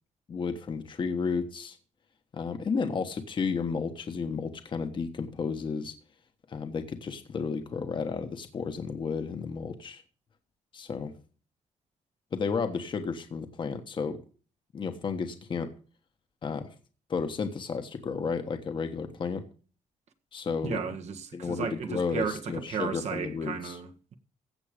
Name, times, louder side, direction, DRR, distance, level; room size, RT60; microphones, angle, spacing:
voice 1, 0.3-1.8 2.3-5.9 6.5-10.0 10.7-11.1 12.3-14.2 14.7-15.7 16.4-16.7 17.1-19.5 20.3-20.8 21.3-23.8, left 5 dB, 40° left, 1.3 m, -32 dB
voice 2, 20.6-24.1, right 6 dB, 65° right, 1.6 m, -34 dB
15.5 x 7.6 x 5.1 m
cardioid pair, 130°, 12 cm